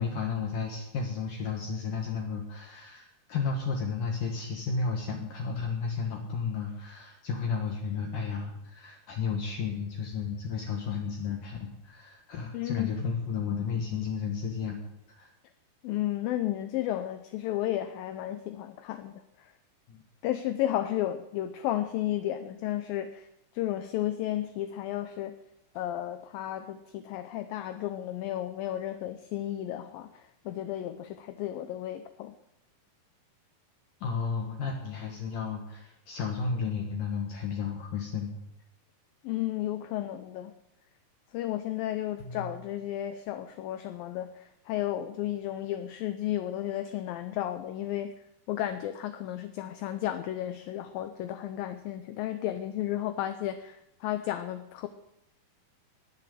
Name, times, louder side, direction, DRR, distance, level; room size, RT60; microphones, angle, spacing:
voice 1, 0.0-14.8 15.2-15.3 19.9-20.0 34.0-38.4 42.2-42.5, left 5 dB, 60° left, 2 dB, 2.8 m, -33 dB
voice 2, 12.5-12.9 15.8-19.2 20.2-23.3 23.5-25.3 25.8-32.3 39.2-40.5 41.3-48.1 48.5-54.9, left 13 dB, 75° left, 9 dB, 2.2 m, -33 dB
19.5 x 7.3 x 7.7 m, 0.86 s
omnidirectional pair, 4.7 m